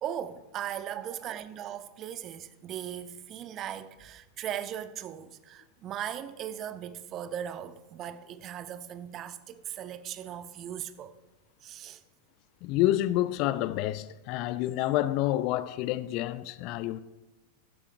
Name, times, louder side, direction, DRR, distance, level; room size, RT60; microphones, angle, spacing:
voice 1, 0.0-11.1 11.6-12.0, right 10 dB, 30° right, 0.5 m, -38 dB
voice 2, 12.6-17.0, left 14 dB, 40° left, 0.4 m, -28 dB
14.5 x 8.3 x 2.2 m
figure-of-eight pair, 90°, 0 cm